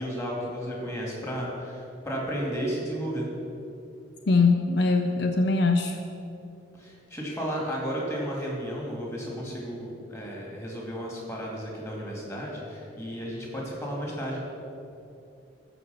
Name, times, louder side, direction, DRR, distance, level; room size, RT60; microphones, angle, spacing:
voice 1, 0.0-3.3 6.8-14.4, equal, 15° left, -3 dB, 2.3 m, -33 dB
voice 2, 4.3-6.0, left 3 dB, 60° left, 5 dB, 0.5 m, -22 dB
13.0 x 5.0 x 7.0 m, 2.7 s
head